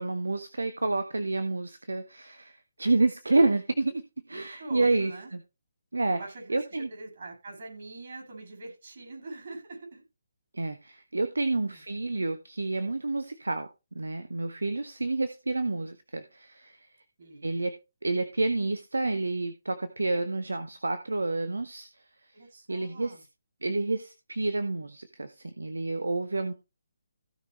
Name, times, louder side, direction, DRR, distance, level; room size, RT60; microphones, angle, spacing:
voice 1, 0.0-4.0 4.3-5.4 5.9-6.2 6.5-6.9 10.5-13.7 13.9-16.9 17.4-17.7 18.0-21.9 22.7-23.2 23.6-26.5, right 2 dB, 70° right, 10 dB, 1.3 m, -29 dB
voice 2, 4.3-5.3 6.1-10.0 11.7-11.8 17.2-17.7 22.3-23.2 26.3-26.6, right 2 dB, 50° right, 1 dB, 7.9 m, -44 dB
16.5 x 6.2 x 3.2 m, 0.26 s
figure-of-eight pair, 140°, 0 cm